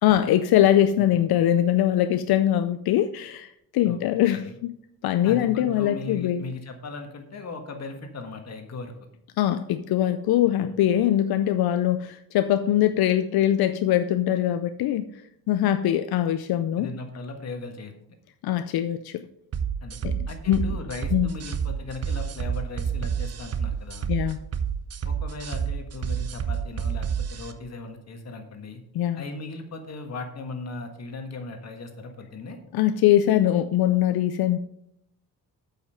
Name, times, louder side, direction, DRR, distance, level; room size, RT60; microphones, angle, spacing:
voice 1, 0.0-4.7 5.0-6.4 9.4-15.1 15.5-16.9 18.4-19.2 20.0-20.2 20.5-20.6 21.1-21.3 24.1-24.4 28.9-29.2 32.7-34.6, left 12 dB, 80° left, 10 dB, 0.5 m, -22 dB
voice 2, 5.2-8.9 16.8-17.9 19.8-20.0 20.3-24.1 25.0-28.8 29.1-32.6, left 3 dB, 45° left, 5 dB, 1.5 m, -38 dB
sound 1, 19.5-27.5, right 7 dB, 45° right, 0.7 m, -29 dB
8.3 x 5.7 x 5.7 m, 0.77 s
cardioid pair, 140°, 36 cm